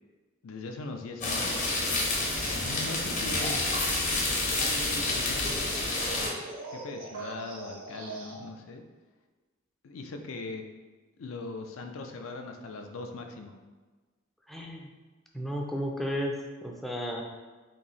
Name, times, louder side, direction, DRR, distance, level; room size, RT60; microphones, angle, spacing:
voice 1, 0.4-1.6 2.6-3.6 4.6-5.6 6.7-8.8 9.8-10.6 11.2-13.6, left 3 dB, 70° left, 5 dB, 0.4 m, -40 dB
sound 1, 1.2-6.3, left 2 dB, 35° left, 0.7 m, -29 dB
sound 2, 2.1-8.4, right 2 dB, 75° right, 0.7 m, -43 dB
voice 2, 14.5-14.9 15.3-16.3 16.6-17.2, equal, ahead, -1 dB, 0.4 m, -33 dB
3.0 x 2.7 x 4.0 m, 1.3 s
head